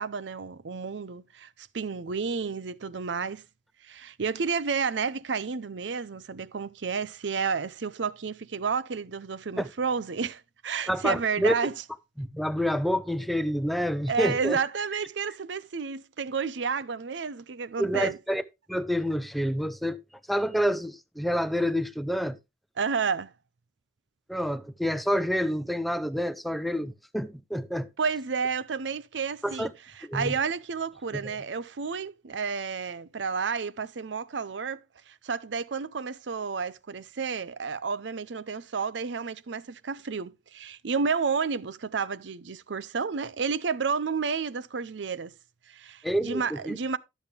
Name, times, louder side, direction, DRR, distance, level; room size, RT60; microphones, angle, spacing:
voice 1, 0.0-3.4 3.8-11.7 14.1-18.2 22.8-23.3 28.0-29.7 30.0-45.3 45.7-47.0, right 5 dB, 80° right, 0.6 m, -31 dB
voice 2, 10.9-11.5 12.2-14.6 17.8-18.4 18.7-20.0 20.3-22.4 24.3-27.9 29.4-29.7 30.0-30.3 31.1-31.2 46.0-46.8, equal, ahead, 0.6 m, -28 dB
12.0 x 7.1 x 3.3 m
head